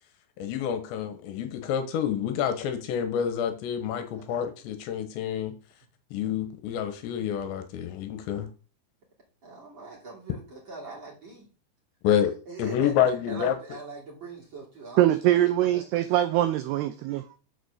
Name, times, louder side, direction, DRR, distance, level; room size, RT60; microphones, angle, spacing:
voice 1, 0.4-5.5 6.1-8.5 12.0-12.3 12.6-13.6, left 9 dB, 80° left, 3.1 m, -28 dB
voice 2, 9.4-11.5 12.5-15.8, right 2 dB, 30° right, 2.8 m, -42 dB
voice 3, 15.0-17.2, right 13 dB, 85° right, 2.3 m, -23 dB
6.7 x 5.0 x 6.4 m
omnidirectional pair, 5.2 m